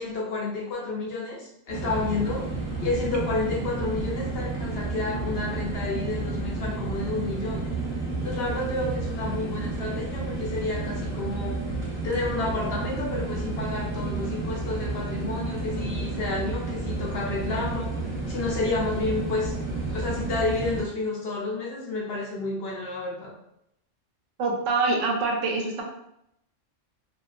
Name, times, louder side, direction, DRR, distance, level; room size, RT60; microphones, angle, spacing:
voice 1, 0.0-2.5 2.8-7.6 8.2-11.6 12.0-17.9 18.3-19.5 19.9-23.3, left 3 dB, 60° left, -3 dB, 0.8 m, -30 dB
sound 1, 1.7-20.8, right 3 dB, 35° right, 0.8 m, -31 dB
voice 2, 24.4-25.8, right 3 dB, 85° right, 1 dB, 1.0 m, -25 dB
2.5 x 2.2 x 2.4 m, 0.78 s
omnidirectional pair, 1.3 m